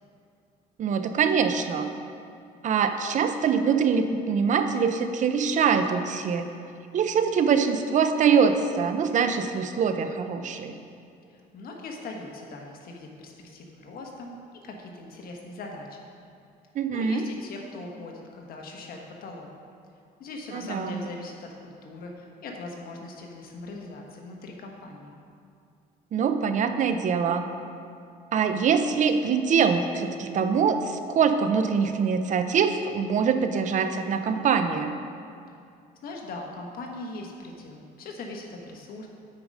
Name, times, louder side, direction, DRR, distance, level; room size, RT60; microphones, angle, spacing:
voice 1, 0.8-1.9 2.6-6.5 6.9-10.7 16.8-17.2 20.5-21.0 26.1-27.5 28.3-34.9, right 6 dB, 45° right, 8 dB, 0.5 m, -24 dB
voice 2, 11.3-14.3 14.6-16.1 16.9-19.5 20.2-25.2 36.0-39.1, left 2 dB, 60° left, 1 dB, 1.2 m, -40 dB
8.2 x 4.8 x 5.3 m, 2.4 s
cardioid pair, 110°, 17 cm